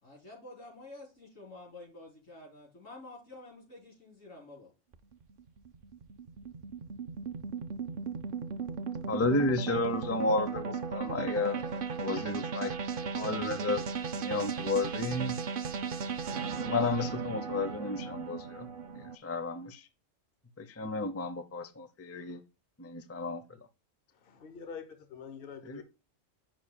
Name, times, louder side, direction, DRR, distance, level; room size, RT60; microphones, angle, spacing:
voice 1, 0.0-4.7 11.3-12.6, left 2 dB, 85° left, 4.3 m, -50 dB
sound 1, 4.9-19.2, right 5 dB, 55° right, 0.6 m, -36 dB
voice 2, 9.1-11.6 12.0-12.7 13.0-13.8 14.2-15.4 16.6-18.7 19.2-19.9 20.6-22.4 22.8-23.4 25.6-25.8, left 2 dB, 20° left, 0.4 m, -32 dB
voice 3, 24.2-25.8, left 6 dB, 50° left, 1.1 m, -45 dB
8.6 x 6.0 x 2.3 m
omnidirectional pair, 1.3 m